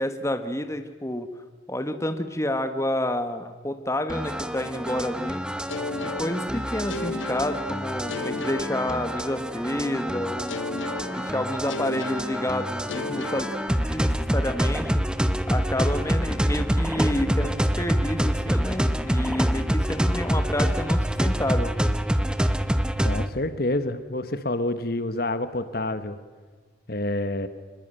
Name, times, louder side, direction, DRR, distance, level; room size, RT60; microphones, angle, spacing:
voice 1, 0.0-1.3 1.7-5.4 6.0-10.6 11.1-13.5 13.7-15.0 15.5-21.7, left 1 dB, 15° left, 8 dB, 1.4 m, -29 dB
sound 1, 4.1-23.3, equal, 5° right, 0.8 m, -26 dB
sound 2, 5.7-9.6 10.5-14.3, left 4 dB, 80° left, 1.2 m, -35 dB
voice 2, 23.0-26.2 26.9-27.5, left 1 dB, 50° left, 12 dB, 1.3 m, -28 dB
24.5 x 21.0 x 9.0 m, 1.5 s
head